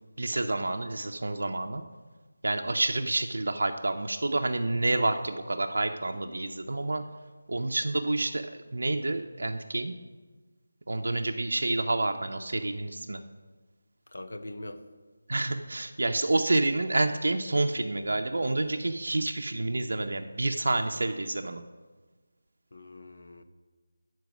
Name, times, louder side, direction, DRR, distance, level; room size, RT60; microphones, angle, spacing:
voice 1, 0.2-1.8 2.4-7.0 7.5-9.9 10.9-13.2 15.3-21.6, right 2 dB, 70° right, 5 dB, 0.5 m, -28 dB
voice 2, 14.1-14.8 22.7-23.4, left 1 dB, 70° left, 7 dB, 0.8 m, -42 dB
9.3 x 4.6 x 6.0 m, 1.3 s
figure-of-eight pair, 170°, 0 cm